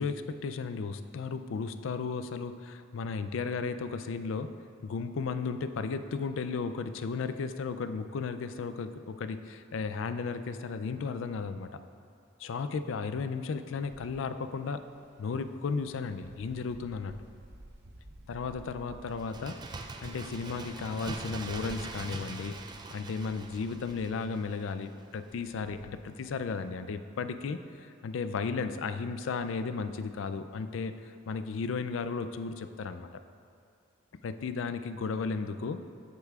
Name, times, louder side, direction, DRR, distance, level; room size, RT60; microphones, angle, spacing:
voice 1, 0.0-4.5 4.8-11.8 12.4-14.9 15.2-17.1 18.3-19.6 20.0-22.6 22.9-33.1 34.2-35.8, left 4 dB, 65° left, 10 dB, 0.4 m, -34 dB
Wind, 13.6-26.7, right 1 dB, 55° right, 0.7 m, -56 dB
Bird, 19.2-24.7 25.0-25.1, right 3 dB, 20° right, 0.4 m, -42 dB
11.0 x 8.1 x 2.4 m, 2.4 s
head